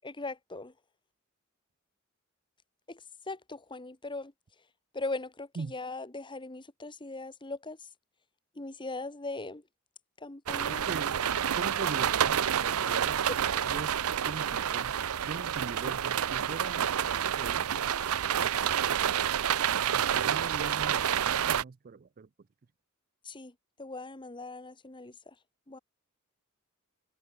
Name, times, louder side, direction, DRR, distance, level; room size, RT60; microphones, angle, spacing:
voice 1, 0.0-0.7 2.9-4.3 4.9-7.8 8.5-9.6 10.2-10.9 13.3-13.4 23.2-25.3 25.7-25.8, left 2 dB, 20° left, 1.4 m, -39 dB
sound 1, 10.5-21.6, right 9 dB, 85° right, 0.6 m, -29 dB
voice 2, 10.7-13.2 13.7-13.9 14.2-14.9 15.3-16.9 17.4-17.7 18.4-18.8 19.9-22.3, right 4 dB, 40° right, 0.4 m, -41 dB
head